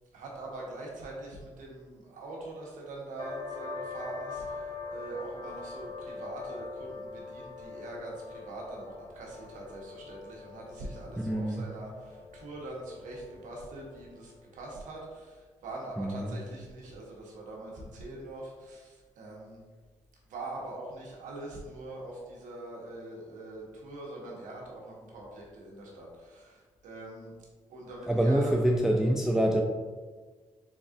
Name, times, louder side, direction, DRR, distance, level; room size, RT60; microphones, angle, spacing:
voice 1, 0.1-19.6 20.3-27.3 27.7-28.5, right 2 dB, 85° right, -2 dB, 1.0 m, -43 dB
sound 1, 3.2-14.5, left 4 dB, 40° left, 1.3 m, -43 dB
voice 2, 11.2-11.6 16.0-16.3 28.1-29.6, right 1 dB, 5° right, 1 dB, 0.4 m, -26 dB
4.0 x 3.6 x 2.5 m, 1.4 s
cardioid pair, 65°, 13 cm